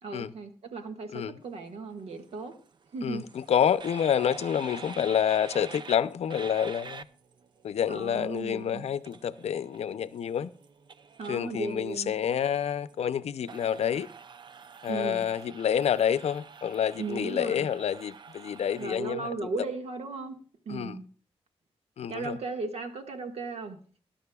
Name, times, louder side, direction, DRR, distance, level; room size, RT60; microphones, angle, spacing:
voice 1, 0.0-2.5 2.9-3.2 7.9-8.9 11.2-12.1 14.9-15.2 17.0-17.7 18.8-20.4 20.6-21.0 22.1-23.8, right 4 dB, 75° right, 1.7 m, -36 dB
sound 1, 2.0-19.0, right 5 dB, 45° right, 0.5 m, -47 dB
voice 2, 3.0-7.1 7.6-10.5 11.3-14.1 14.8-19.5 20.7-21.0 22.0-22.4, left 9 dB, 75° left, 0.6 m, -28 dB
20.5 x 11.5 x 2.3 m
wide cardioid pair, 170°, 11 cm